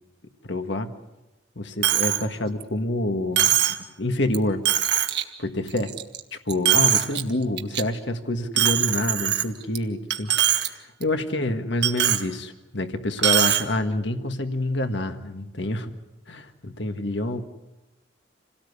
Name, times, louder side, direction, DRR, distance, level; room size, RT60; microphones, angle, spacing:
voice 1, 0.5-0.9 1.5-3.6 4.0-4.7 4.9-5.1 5.4-5.9 6.3-15.9 16.3-17.4, left 1 dB, 65° left, 7 dB, 1.7 m, -27 dB
Coin (dropping), 1.8-2.2 2.6-2.7 3.4-3.8 4.3-4.4 4.7-5.2 5.7-6.2 6.5-7.2 7.6-7.8 8.6-9.8 10.1-10.7 11.0-11.1 11.8-12.2 13.2-13.6, right 11 dB, 60° right, 1.6 m, -21 dB
28.0 x 17.5 x 8.3 m, 0.99 s
head